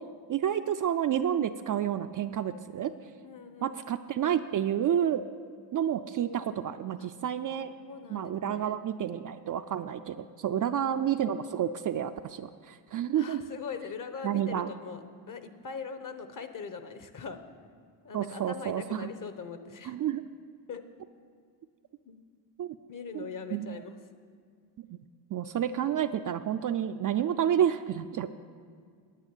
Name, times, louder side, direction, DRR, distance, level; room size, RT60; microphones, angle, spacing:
voice 1, 0.3-2.9 3.6-5.2 5.7-7.7 8.1-13.4 14.2-14.7 18.1-19.1 19.8-20.2 22.6-22.8 23.1-23.8 24.8-25.0 25.3-28.3, right 10 dB, 45° right, 9 dB, 0.4 m, -30 dB
voice 2, 3.2-3.8 7.0-7.1 7.7-8.8 10.6-11.0 13.1-17.4 18.0-19.9 20.7-20.9 22.0-22.2 22.9-24.0 28.2-28.3, left 5 dB, 40° left, 9 dB, 1.0 m, -41 dB
9.9 x 8.5 x 8.8 m, 2.1 s
cardioid pair, 105°, 49 cm